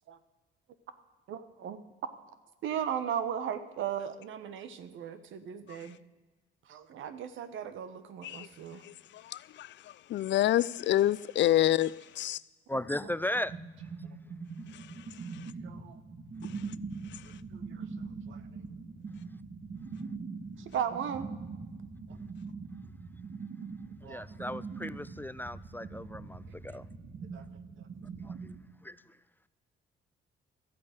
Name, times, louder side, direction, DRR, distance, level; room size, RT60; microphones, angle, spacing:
voice 1, 1.3-1.8 2.6-6.0 6.7-8.8 12.7-13.1 15.6-16.0 17.5-17.9 18.3-18.4 20.6-21.3 24.0-24.2 26.7-26.8 27.3-27.4 27.8-27.9, right 9 dB, 80° right, 1.2 m, -37 dB
voice 2, 8.8-9.7 10.1-12.4, left 13 dB, 65° left, 0.5 m, -27 dB
voice 3, 12.7-13.5 13.8-14.1 24.0-26.8 28.2-28.6 28.8-29.0, left 1 dB, 10° left, 0.3 m, -36 dB
sound 1, 12.8-28.6, right 4 dB, 50° right, 1.9 m, -42 dB
13.0 x 8.7 x 8.2 m
cardioid pair, 90°, 20 cm